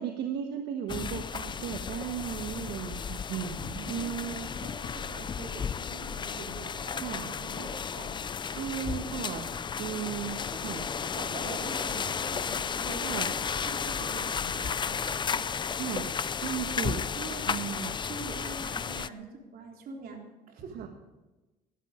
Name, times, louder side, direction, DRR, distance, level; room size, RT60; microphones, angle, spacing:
voice 1, 0.0-4.5 7.0-7.3 8.5-9.5 9.8-10.9 13.0-13.3 15.7-16.1 16.4-17.0 17.5-18.0 20.7-20.9, right 9 dB, 80° right, 4 dB, 1.4 m, -35 dB
sound 1, 0.9-19.1, left 6 dB, 25° left, 0.5 m, -33 dB
voice 2, 4.0-8.2 8.9-9.2 10.5-10.6 11.0-13.4 13.6-15.4 17.2-17.5 18.0-20.2 20.5-20.9, right 4 dB, 60° right, 1 dB, 3.7 m, -44 dB
18.5 x 12.0 x 5.1 m, 1.1 s
cardioid pair, 110°, 17 cm